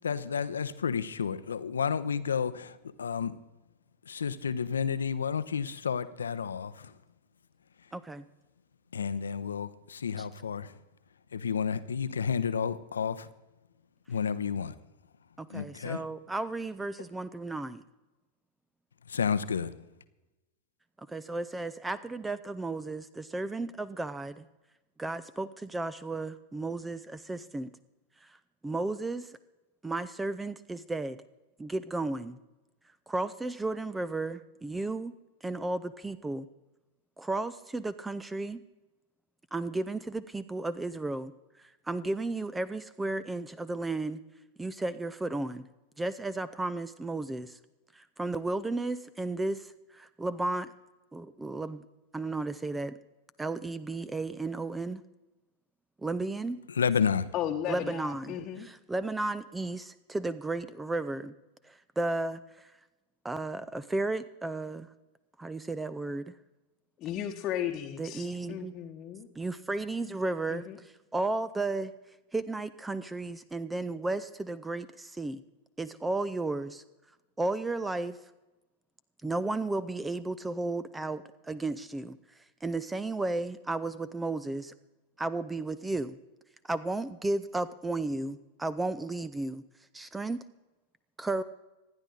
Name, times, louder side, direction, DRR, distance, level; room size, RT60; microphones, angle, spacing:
voice 1, 0.0-3.3 4.1-6.9 8.9-10.8 11.3-13.3 14.1-14.7 15.5-16.0 19.1-19.8 56.7-57.3, left 6 dB, 70° left, 0.8 m, -31 dB
voice 2, 7.9-8.3 10.2-10.3 15.4-17.8 21.0-24.4 25.0-27.7 28.2-28.4 28.6-29.4 29.8-31.2 31.6-32.4 33.1-35.1 35.4-36.5 37.2-38.6 39.5-41.3 41.6-44.2 44.6-45.7 46.0-47.6 47.9-50.7 51.1-51.8 52.1-52.9 53.4-55.0 56.0-56.6 57.7-61.3 61.6-62.7 63.2-64.9 65.4-66.3 68.0-68.7 69.3-71.9 72.3-75.4 75.8-76.8 77.4-78.2 79.2-82.2 82.6-84.7 85.2-86.2 86.6-89.6 89.9-90.4 91.2-91.4, right 2 dB, 10° right, 0.6 m, -34 dB
voice 3, 57.3-58.7 67.0-69.3 70.5-70.8, left 10 dB, 35° left, 1.2 m, -35 dB
26.0 x 10.5 x 3.9 m
figure-of-eight pair, 90°, 0 cm